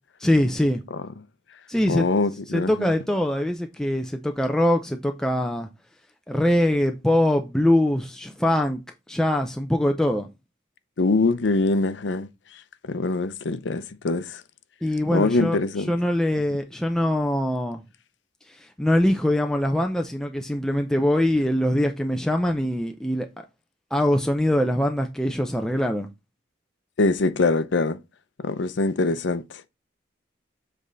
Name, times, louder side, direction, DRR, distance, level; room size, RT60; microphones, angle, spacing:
voice 1, 0.2-0.8 1.7-2.1 2.5-5.7 6.3-8.8 9.1-10.3 14.8-15.6 15.9-17.8 18.5-23.3 23.9-26.1, left 1 dB, 5° left, 0.4 m, -23 dB
voice 2, 1.9-2.9 11.0-12.3 12.8-14.4 15.1-15.9 27.0-28.0 28.4-29.4, left 3 dB, 75° left, 0.6 m, -23 dB
7.6 x 3.3 x 3.9 m
head